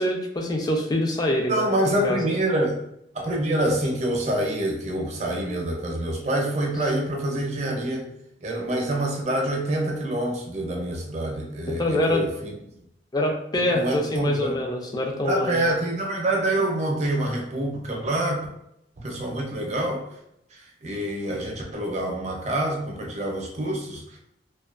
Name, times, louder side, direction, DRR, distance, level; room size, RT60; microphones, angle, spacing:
voice 1, 0.0-2.3 11.7-12.2 13.1-15.6, left 1 dB, 25° left, 1 dB, 0.4 m, -25 dB
voice 2, 1.5-2.8 3.1-8.0 8.4-12.5 13.5-14.6 15.2-18.5 19.0-20.0 20.5-24.2, right 1 dB, 40° right, 1 dB, 0.5 m, -26 dB
2.5 x 2.2 x 2.4 m, 0.77 s
head